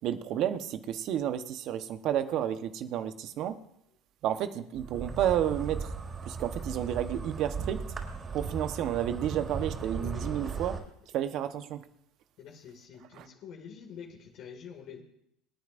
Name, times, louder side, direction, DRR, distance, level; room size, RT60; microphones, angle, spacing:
voice 1, 0.0-3.6 4.2-5.9 6.2-7.8 8.3-10.8 11.1-11.8 13.1-13.3, right 10 dB, 60° right, 1.1 m, -31 dB
Insect, 4.7-10.8, right 5 dB, 30° right, 4.8 m, -37 dB
voice 2, 10.0-10.6 12.4-15.0, left 7 dB, 60° left, 2.2 m, -47 dB
27.5 x 9.5 x 2.6 m
supercardioid pair, 90°, 0 cm